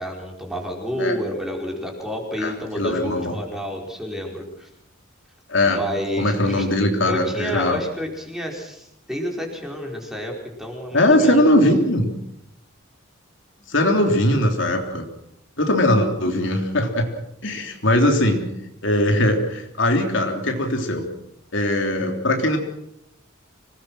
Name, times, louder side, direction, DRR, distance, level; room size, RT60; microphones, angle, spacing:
voice 1, 0.0-4.7 5.6-6.7 7.1-11.4, equal, ahead, 0 dB, 4.9 m, -30 dB
voice 2, 2.4-3.3 5.5-5.8 6.2-7.8 10.9-12.1 13.7-15.0 15.6-17.1 17.4-18.4 18.8-21.0 21.5-22.6, left 1 dB, 60° left, 3 dB, 3.4 m, -20 dB
26.0 x 19.5 x 6.3 m, 0.76 s
head